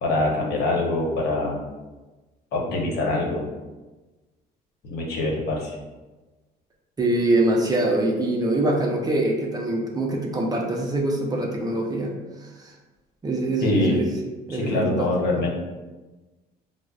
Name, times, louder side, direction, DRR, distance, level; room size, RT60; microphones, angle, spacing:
voice 1, 0.0-1.6 2.5-3.5 4.8-5.8 13.6-14.0 14.5-15.6, left 2 dB, 70° left, -2 dB, 0.9 m, -24 dB
voice 2, 7.0-12.1 12.4-12.7 13.2-14.1 14.5-15.1, right 2 dB, 25° right, 0 dB, 0.5 m, -24 dB
5.0 x 2.0 x 2.3 m, 1.2 s
cardioid pair, 110°, 17 cm